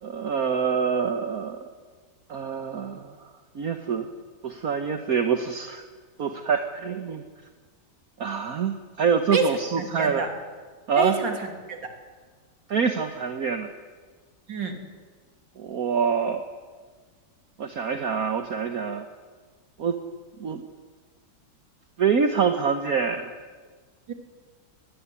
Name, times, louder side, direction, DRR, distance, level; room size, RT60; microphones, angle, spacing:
voice 1, 0.0-1.7 2.3-3.1 3.5-4.1 4.4-5.8 6.2-7.2 8.2-10.2 10.9-11.2 12.7-13.7 15.6-16.4 17.6-19.1 19.8-20.0 20.4-20.6 22.0-23.4, right 6 dB, 55° right, 7 dB, 1.6 m, -25 dB
voice 2, 9.3-10.3 11.0-11.8 14.5-14.8 24.1-24.2, right 3 dB, 85° right, 5 dB, 3.6 m, -28 dB
22.5 x 19.5 x 9.8 m, 1.5 s
omnidirectional pair, 1.9 m